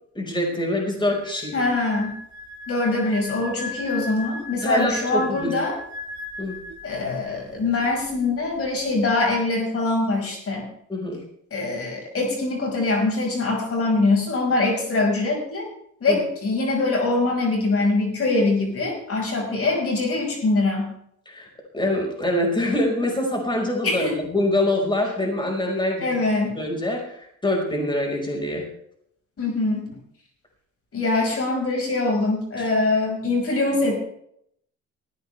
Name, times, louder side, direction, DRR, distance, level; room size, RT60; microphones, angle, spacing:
voice 1, 0.1-1.5 4.6-5.5 6.4-6.6 10.9-11.2 16.1-16.2 21.3-21.5 21.7-26.1 26.5-28.6 32.6-32.7, left 1 dB, 15° left, 0 dB, 5.0 m, -25 dB
sound 1, 1.0-7.4 7.7-7.9, left 2 dB, 65° right, 1.9 m, -37 dB
voice 2, 1.5-2.1 2.7-5.8 6.8-10.7 11.5-15.7 16.0-20.9 23.8-24.1 26.0-26.6 29.4-30.0 30.9-34.0, left 2 dB, 50° left, 0 dB, 5.4 m, -23 dB
18.5 x 14.5 x 3.4 m, 0.71 s
cardioid pair, 90°, 30 cm